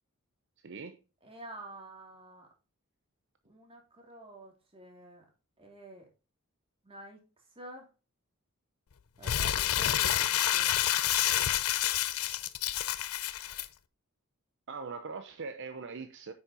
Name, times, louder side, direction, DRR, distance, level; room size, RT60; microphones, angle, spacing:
voice 1, 0.6-1.0 14.7-16.3, right 4 dB, 60° right, 0.7 m, -41 dB
voice 2, 1.2-2.5 3.4-5.2 5.6-6.1 6.8-7.2 7.5-7.9 9.2-10.7, right 2 dB, 25° right, 2.7 m, -49 dB
Crumpling crinkling, 9.2-13.7, left 12 dB, 90° left, 0.6 m, -28 dB
9.4 x 6.3 x 2.8 m
head